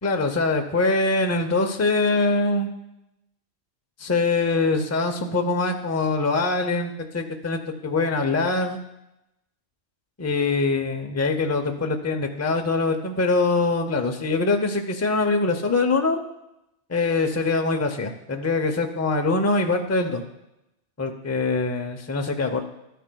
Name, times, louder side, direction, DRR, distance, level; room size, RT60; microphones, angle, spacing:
voice 1, 0.0-2.7 4.0-8.8 10.2-16.2 16.9-20.2 21.0-22.6, left 3 dB, 20° left, 5 dB, 0.5 m, -23 dB
12.5 x 10.0 x 2.2 m, 0.89 s
omnidirectional pair, 1.2 m